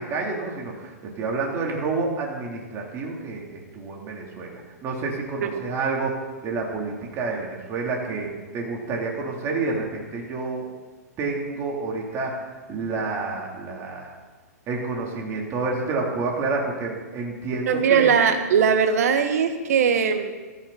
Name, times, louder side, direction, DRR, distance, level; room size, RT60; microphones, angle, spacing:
voice 1, 0.0-8.3 8.5-10.7 11.2-14.1 14.7-18.1, right 3 dB, 30° right, -1 dB, 3.8 m, -29 dB
voice 2, 17.7-20.3, right 7 dB, 65° right, 7 dB, 1.7 m, -20 dB
15.5 x 14.0 x 4.4 m, 1.3 s
hypercardioid pair, 115°, 9 cm